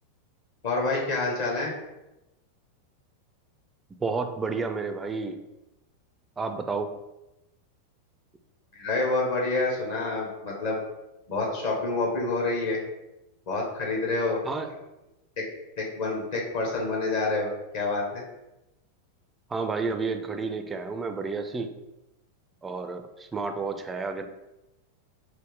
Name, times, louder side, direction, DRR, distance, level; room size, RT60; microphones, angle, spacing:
voice 1, 0.6-1.7 8.7-10.8 11.3-12.8 13.5-14.4 15.4-15.5 15.8-17.5 17.7-18.2, left 3 dB, 50° left, -2 dB, 1.4 m, -27 dB
voice 2, 4.0-5.4 6.4-6.9 14.4-14.7 19.5-21.7 22.6-24.3, right 4 dB, 15° right, 6 dB, 0.4 m, -31 dB
6.2 x 2.1 x 3.5 m, 0.95 s
figure-of-eight pair, 90°, 0 cm